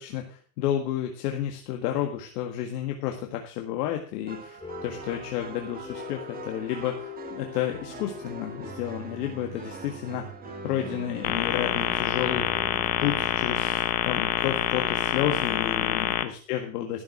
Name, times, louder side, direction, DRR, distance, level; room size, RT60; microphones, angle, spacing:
voice 1, 0.0-10.3 10.6-12.6 13.0-17.0, left 11 dB, 70° left, 3 dB, 1.8 m, -31 dB
sound 1, 1.6-1.9 2.4-2.5 3.9-4.0 4.3-15.8, right 7 dB, 20° right, 0.9 m, -44 dB
sound 2, 4.6-14.4, left 4 dB, 10° left, 3.4 m, -43 dB
sound 3, 11.2-16.2, left 13 dB, 50° left, 1.4 m, -26 dB
13.0 x 7.2 x 6.0 m, 0.42 s
supercardioid pair, 130°, 48 cm